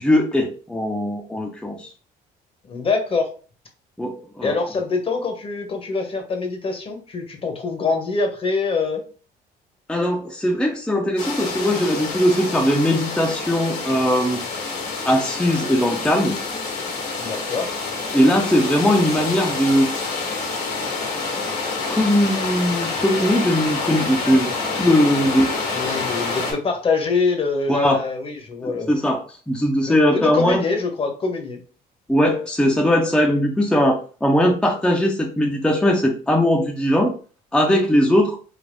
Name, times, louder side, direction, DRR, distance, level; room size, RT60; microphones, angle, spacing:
voice 1, 0.0-1.9 4.0-4.5 9.9-14.4 15.0-16.4 18.1-19.9 21.9-25.5 27.7-28.0 28.6-30.6 32.1-37.1 37.5-38.4, equal, 5° left, 1 dB, 0.4 m, -19 dB
voice 2, 2.7-3.3 4.4-9.0 17.2-17.7 25.1-25.2 25.7-28.9 29.9-31.6, left 4 dB, 35° left, 4 dB, 0.8 m, -24 dB
sound 1, 11.2-26.5, left 4 dB, 85° left, 1.5 m, -27 dB
3.3 x 2.6 x 2.5 m, 0.38 s
cardioid pair, 110°, 17 cm